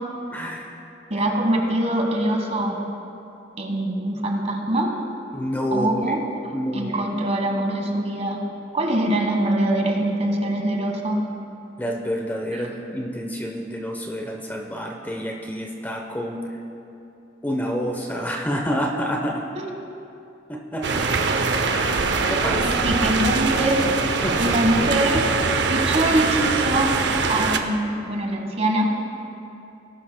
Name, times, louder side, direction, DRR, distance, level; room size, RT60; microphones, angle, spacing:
voice 1, 0.3-0.8 5.3-6.2 6.5-7.1 11.8-16.6 17.4-19.4 20.5-21.0 21.7-23.0 23.8-23.9 24.2-24.6, equal, 10° left, 0 dB, 0.8 m, -28 dB
voice 2, 1.1-2.8 3.6-4.9 5.7-6.2 6.7-8.4 8.7-11.2 19.6-19.7 22.8-23.9 24.4-25.3 25.7-27.0 27.3-28.8, right 1 dB, 35° right, 2 dB, 1.4 m, -23 dB
sound 1, 20.8-27.6, right 4 dB, 65° right, 0.7 m, -22 dB
19.0 x 11.5 x 2.2 m, 2.8 s
head